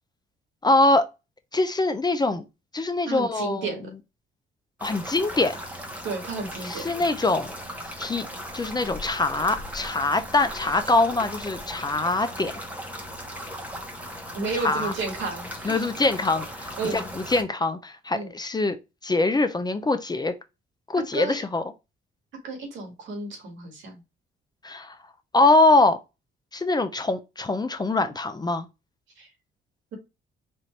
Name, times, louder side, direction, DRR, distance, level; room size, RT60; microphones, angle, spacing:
voice 1, 0.6-1.1 1.5-2.4 2.7-3.8 4.8-5.6 6.6-7.5 8.0-8.3 8.5-12.5 14.6-14.9 15.6-18.8 19.0-20.3 20.9-21.6 24.6-25.0 25.3-26.0 26.5-28.7, left 2 dB, 20° left, 0.6 m, -23 dB
voice 2, 3.1-3.9 6.0-6.8 14.3-15.8 16.8-17.0 18.1-18.3 21.1-21.4 22.4-24.0 29.2-29.3, right 3 dB, 75° right, 1.8 m, -32 dB
sound 1, 4.8-17.4, equal, 5° right, 1.2 m, -37 dB
4.4 x 2.6 x 3.2 m
cardioid pair, 90°, 20 cm